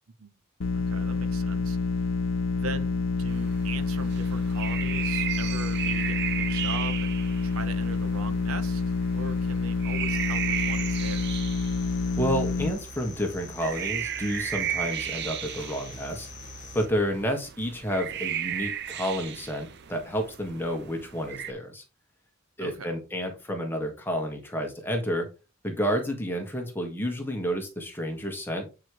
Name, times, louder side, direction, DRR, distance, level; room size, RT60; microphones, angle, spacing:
sound 1, 0.6-12.7, left 4 dB, 60° left, 0.7 m, -28 dB
voice 1, 0.7-1.8 2.5-7.2 7.4-8.8 9.1-11.4 22.6-23.0, right 3 dB, 80° right, 0.9 m, -40 dB
sound 2, 3.3-21.5, right 10 dB, 50° right, 0.6 m, -35 dB
sound 3, 10.1-16.9, left 2 dB, 35° left, 1.7 m, -44 dB
voice 2, 12.2-16.3 16.7-21.8 22.6-25.3 25.6-28.7, equal, 10° left, 1.5 m, -30 dB
8.8 x 4.9 x 3.0 m
head